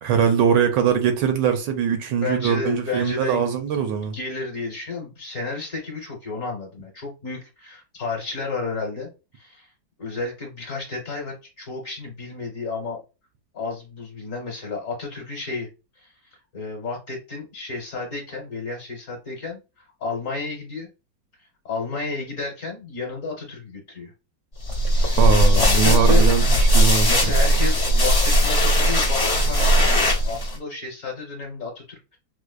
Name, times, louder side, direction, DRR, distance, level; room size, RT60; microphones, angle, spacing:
voice 1, 0.0-4.2 25.2-26.5 26.7-27.3, right 7 dB, 75° right, 1.2 m, -22 dB
voice 2, 2.1-3.5 4.1-9.1 9.4-9.7 10.0-13.0 13.5-15.7 16.5-19.6 20.0-20.9 21.6-24.1 24.9-25.2 25.5-26.3 27.1-32.2, left 4 dB, 50° left, 1.2 m, -31 dB
sound 1, 24.6-30.6, equal, 30° left, 0.4 m, -18 dB
5.0 x 2.0 x 2.3 m
omnidirectional pair, 2.1 m